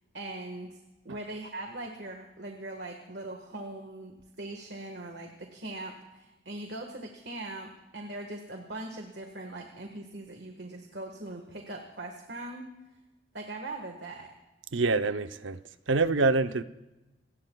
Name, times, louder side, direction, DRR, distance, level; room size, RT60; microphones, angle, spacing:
voice 1, 0.1-0.8 1.0-12.7 13.3-14.3, right 2 dB, 60° right, 1.6 m, -41 dB
voice 2, 14.7-15.6 15.9-16.6, right 3 dB, 85° right, 0.8 m, -25 dB
27.5 x 19.0 x 2.3 m
head